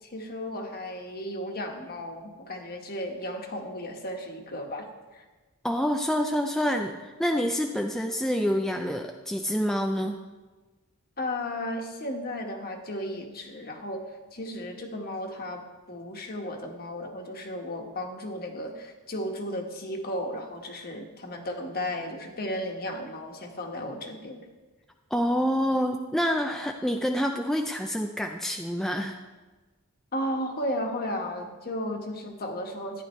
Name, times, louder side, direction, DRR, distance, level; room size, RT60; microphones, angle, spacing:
voice 1, 0.0-4.9 5.1-5.2 11.2-24.4 30.1-33.0, left 1 dB, 45° left, 2 dB, 1.5 m, -34 dB
voice 2, 5.6-10.2 25.1-29.2, equal, ahead, 3 dB, 0.4 m, -27 dB
14.0 x 10.0 x 3.2 m, 1.2 s
head